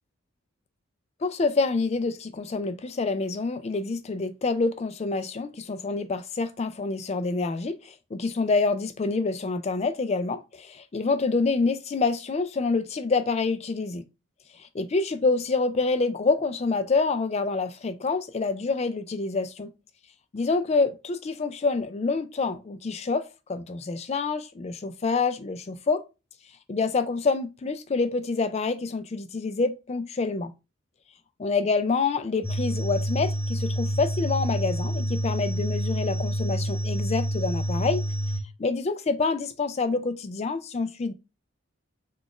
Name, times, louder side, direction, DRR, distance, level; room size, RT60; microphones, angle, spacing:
voice 1, 1.2-14.0 14.6-19.7 20.3-26.0 26.7-30.5 31.4-38.0 38.6-41.1, left 4 dB, 30° left, 0.3 m, -27 dB
sound 1, 32.4-38.4, equal, 10° left, 0.7 m, -28 dB
4.1 x 2.4 x 2.9 m
head